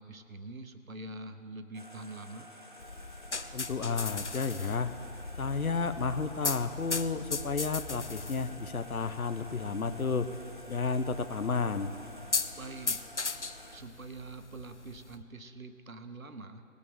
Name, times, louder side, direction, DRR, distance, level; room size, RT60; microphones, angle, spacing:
voice 1, 0.0-2.5 12.6-13.0 13.7-16.6, right 2 dB, 70° right, 8 dB, 1.1 m, -45 dB
sound 1, 1.7-13.8, right 1 dB, 35° right, 0.8 m, -51 dB
sound 2, 2.8-15.2, left 4 dB, 55° left, 0.7 m, -39 dB
voice 2, 3.5-4.9 5.4-10.3 10.7-11.9, left 4 dB, 80° left, 10 dB, 1.0 m, -32 dB
21.0 x 8.4 x 3.7 m, 2.7 s
figure-of-eight pair, 175°, 42 cm